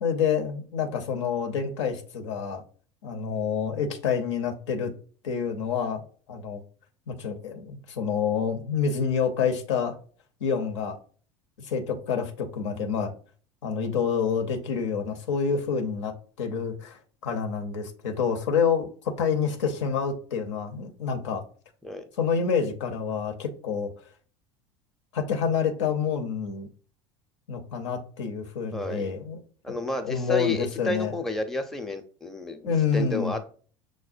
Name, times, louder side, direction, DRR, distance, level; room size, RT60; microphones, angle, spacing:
voice 1, 0.0-2.6 3.0-4.9 5.2-6.0 6.3-6.6 7.1-10.0 10.4-11.0 11.6-13.1 13.6-21.4 22.2-23.9 25.1-26.7 27.5-29.4 29.7-29.8 30.0-31.1 32.6-33.3, left 6 dB, 80° left, 5 dB, 0.6 m, -28 dB
voice 2, 28.7-29.1 29.6-33.5, left 2 dB, ahead, 4 dB, 0.5 m, -31 dB
6.1 x 2.1 x 2.5 m, 0.42 s
hypercardioid pair, 75°, 15 cm